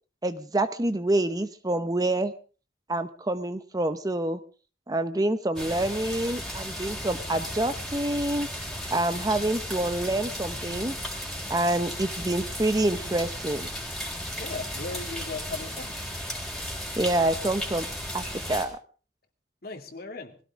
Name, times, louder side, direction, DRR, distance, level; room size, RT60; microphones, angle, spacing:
voice 1, 0.2-2.3 2.9-4.4 4.9-8.5 8.9-11.0 11.5-13.7 17.0-17.8 18.1-18.8, right 1 dB, 20° right, 11 dB, 0.8 m, -27 dB
sound 1, 5.6-18.7, equal, ahead, 3.7 m, -35 dB
voice 2, 14.4-16.0 19.6-20.3, left 3 dB, 55° left, 5 dB, 2.4 m, -37 dB
21.0 x 16.5 x 3.7 m, 0.38 s
head